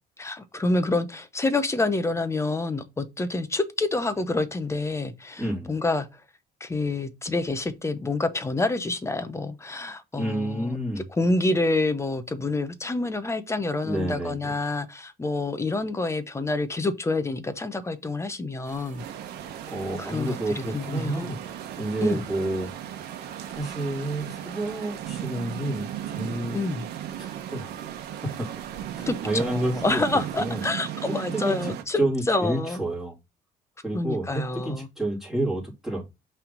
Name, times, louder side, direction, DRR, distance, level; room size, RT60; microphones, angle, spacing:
voice 1, 0.2-6.2 6.6-10.8 11.2-19.0 20.0-21.3 22.0-22.2 26.5-26.9 29.1-32.8 33.9-34.9, left 2 dB, 15° left, 0.8 m, -27 dB
voice 2, 5.4-5.7 10.1-11.0 13.8-14.5 19.7-21.4 21.8-22.7 23.5-26.6 27.2-27.7 28.4-28.5 28.9-30.0 30.4-30.6 31.1-33.1 33.8-36.0, right 1 dB, ahead, 2.5 m, -30 dB
sound 1, 18.6-30.5, right 6 dB, 55° right, 2.3 m, -48 dB
sound 2, 19.0-31.8, right 11 dB, 75° right, 1.0 m, -36 dB
5.7 x 3.5 x 5.2 m
cardioid pair, 110°, 17 cm